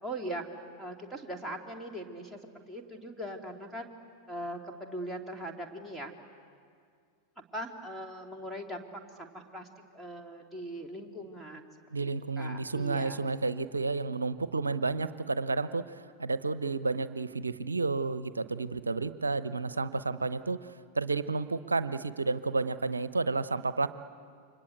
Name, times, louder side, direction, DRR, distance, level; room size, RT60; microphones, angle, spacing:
voice 1, 0.0-0.5 0.8-2.4 2.7-3.9 4.3-6.1 7.5-9.7 9.9-11.7 12.0-12.1 12.4-13.2, right 1 dB, ahead, -1 dB, 2.9 m, -40 dB
voice 2, 11.9-15.8 16.2-20.6 20.9-23.9, right 3 dB, 75° right, 14 dB, 0.9 m, -31 dB
29.0 x 24.5 x 8.1 m, 2.2 s
figure-of-eight pair, 90°, 0 cm